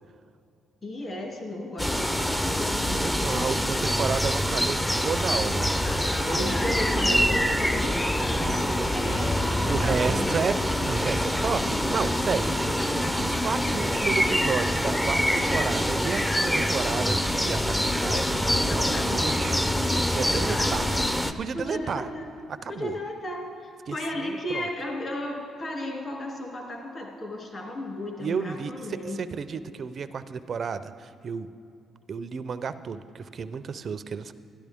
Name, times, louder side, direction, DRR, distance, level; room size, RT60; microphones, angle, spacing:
voice 1, 0.8-2.7 5.6-10.5 12.3-12.5 18.6-19.2 20.3-20.9 21.5-22.3 22.7-29.2, left 1 dB, 40° left, 0 dB, 2.3 m, -35 dB
sound 1, 1.8-21.3, equal, 5° left, 0.5 m, -25 dB
voice 2, 2.9-5.8 9.0-9.3 9.6-10.5 10.9-12.4 13.2-19.6 20.0-20.8 21.4-22.0 22.6-23.0 23.9-24.0 24.2-24.7 28.2-28.7 29.2-31.5 32.1-34.3, right 6 dB, 50° right, 12 dB, 0.4 m, -32 dB
12.0 x 12.0 x 3.5 m, 2.6 s
cardioid pair, 90°, 0 cm